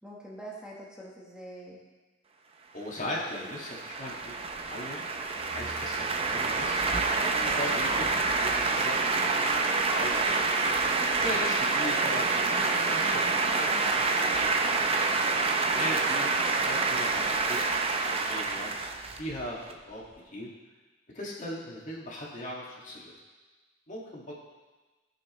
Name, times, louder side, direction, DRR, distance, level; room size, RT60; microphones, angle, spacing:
voice 1, 0.0-1.8 15.7-16.0, right 1 dB, 5° right, -5 dB, 1.3 m, -44 dB
voice 2, 2.7-6.8 7.2-9.6 9.9-10.4 11.2-14.5 15.6-17.6 18.0-18.8 19.2-20.0 20.3-20.5 21.1-23.1 23.9-24.3, left 1 dB, 45° left, -4 dB, 2.0 m, -39 dB
sound 1, 3.0-19.7, right 3 dB, 30° right, 0.7 m, -27 dB
15.0 x 6.4 x 3.2 m, 1.3 s
head